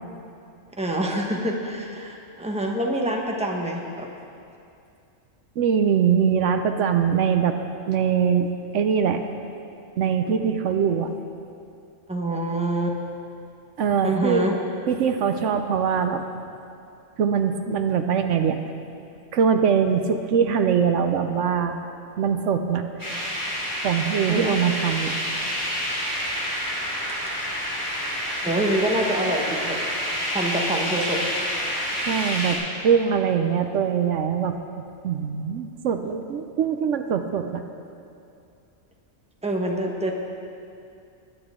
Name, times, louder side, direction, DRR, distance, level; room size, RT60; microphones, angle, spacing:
voice 1, 0.8-4.1 12.1-13.0 14.0-14.5 24.3-24.6 27.1-27.2 28.4-29.8 30.3-31.2 39.4-40.1, right 1 dB, 5° right, 0 dB, 1.1 m, -26 dB
voice 2, 5.6-7.6 7.9-9.2 10.0-11.1 13.8-14.5 14.9-16.2 17.2-18.6 19.3-21.8 22.2-22.8 23.8-25.1 32.1-37.6, right 7 dB, 75° right, 7 dB, 1.0 m, -22 dB
sound 1, 23.0-32.6, equal, 15° left, 3.5 m, -28 dB
21.0 x 9.9 x 3.7 m, 2.5 s
omnidirectional pair, 1.3 m